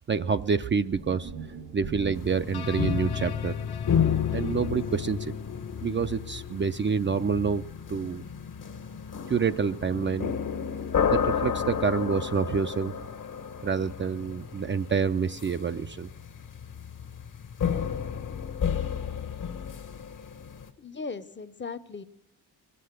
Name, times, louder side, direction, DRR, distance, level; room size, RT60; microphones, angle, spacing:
voice 1, 0.1-1.3 1.7-3.5 4.3-5.4 5.8-7.6 7.9-8.2 9.3-10.3 11.1-12.9 13.6-16.1, right 6 dB, 30° right, 9 dB, 0.4 m, -27 dB
sound 1, 0.9-5.1, right 6 dB, 75° right, 1.6 m, -43 dB
sound 2, 2.1-20.7, left 7 dB, 55° left, 1.1 m, -32 dB
sound 3, 2.5-5.9, left 9 dB, 85° left, 0.8 m, -44 dB
voice 2, 20.8-22.0, left 4 dB, 30° left, 13 dB, 0.7 m, -38 dB
21.5 x 7.7 x 6.6 m, 0.96 s
cardioid pair, 65°, 37 cm